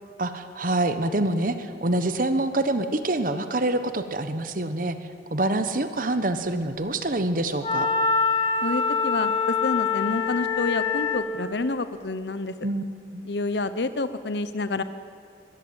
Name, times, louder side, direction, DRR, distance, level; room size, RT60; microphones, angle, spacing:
voice 1, 0.2-5.0 5.3-7.9 12.6-12.8 13.1-13.2, right 2 dB, 50° right, 10 dB, 1.1 m, -26 dB
Wind instrument woodwind instrument, 7.6-11.3, left 5 dB, 30° left, 1.5 m, -24 dB
voice 2, 8.6-12.5 13.2-14.8, left 3 dB, 70° left, 12 dB, 0.8 m, -28 dB
24.0 x 19.5 x 8.9 m, 2.6 s
head